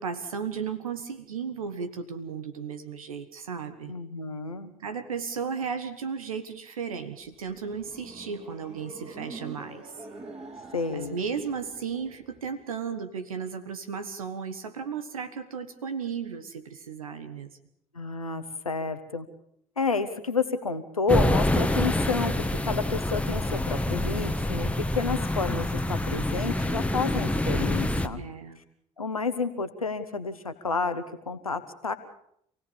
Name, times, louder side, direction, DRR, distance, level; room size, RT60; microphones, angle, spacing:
voice 1, 0.0-3.9 4.8-9.9 10.9-17.6 28.1-28.6, right 6 dB, 80° right, 9 dB, 1.4 m, -35 dB
voice 2, 3.9-4.7 10.7-11.2 17.9-19.3 19.8-28.2 29.0-31.9, left 4 dB, 90° left, 9 dB, 1.4 m, -30 dB
sound 1, 7.1-12.5, right 3 dB, 40° right, 6.8 m, -45 dB
sound 2, 21.1-28.1, left 1 dB, 5° left, 1.5 m, -26 dB
28.0 x 17.0 x 7.2 m, 0.71 s
figure-of-eight pair, 50°, 18 cm